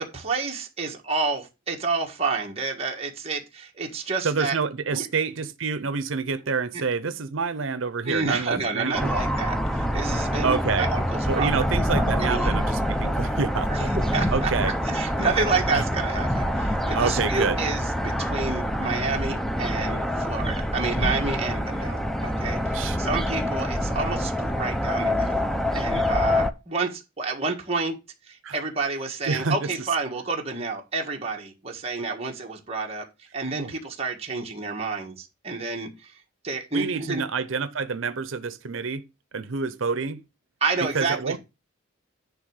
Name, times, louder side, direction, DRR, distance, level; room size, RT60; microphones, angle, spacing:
voice 1, 0.0-4.6 4.9-5.1 8.0-12.7 13.7-28.0 28.3-33.1 33.3-36.1 36.4-37.2 40.6-41.4, right 4 dB, 30° right, 1.6 m, -29 dB
voice 2, 4.2-9.1 10.4-10.9 11.3-13.9 14.3-14.7 15.7-15.8 16.9-17.6 22.7-23.0 28.4-28.6 29.2-29.7 33.5-33.7 36.7-39.1 39.3-40.2 40.9-41.4, right 4 dB, 75° right, 0.7 m, -27 dB
sound 1, 8.9-26.5, equal, ahead, 0.6 m, -26 dB
10.5 x 3.5 x 6.4 m
head